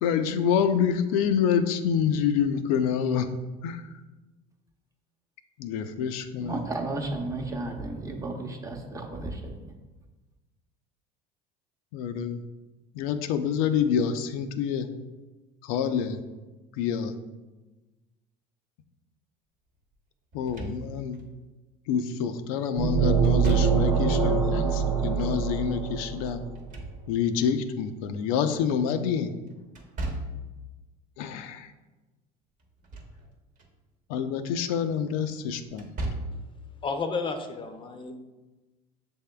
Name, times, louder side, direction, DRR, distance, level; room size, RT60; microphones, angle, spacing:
voice 1, 0.0-3.3 3.6-3.8 5.6-6.6 11.9-12.4 12.9-14.9 15.6-16.2 16.8-17.2 20.3-21.2 21.9-26.4 27.1-29.3 31.2-31.7 34.1-35.9, left 7 dB, 85° left, 8 dB, 0.4 m, -27 dB
voice 2, 6.4-9.4, right 2 dB, 20° right, 2 dB, 0.7 m, -33 dB
Slam / Thump thud, 20.3-21.2 23.2-24.1 26.4-27.4 29.8-30.6 32.6-33.2 33.6-33.7 35.7-36.5, right 1 dB, 50° right, 0.9 m, -35 dB
sound 1, 22.8-26.5, right 6 dB, 80° right, 0.8 m, -24 dB
voice 3, 36.8-38.1, left 4 dB, 30° left, 7 dB, 0.5 m, -31 dB
6.8 x 3.5 x 2.2 m, 1.2 s
supercardioid pair, 105°, 18 cm